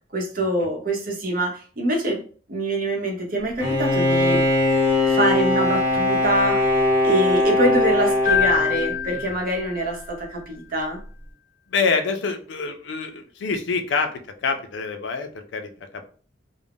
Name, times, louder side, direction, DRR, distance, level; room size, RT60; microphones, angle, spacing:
voice 1, 0.1-2.2 2.5-4.5 5.0-11.0, right 1 dB, 50° right, 1 dB, 0.8 m, -24 dB
Bowed string instrument, 3.6-9.2, left 2 dB, 15° right, 0.7 m, -20 dB
Keyboard (musical), 8.2-10.1, left 9 dB, 45° left, 0.8 m, -25 dB
voice 2, 11.7-16.0, left 4 dB, 80° left, 7 dB, 0.4 m, -26 dB
2.4 x 2.0 x 3.4 m, 0.42 s
head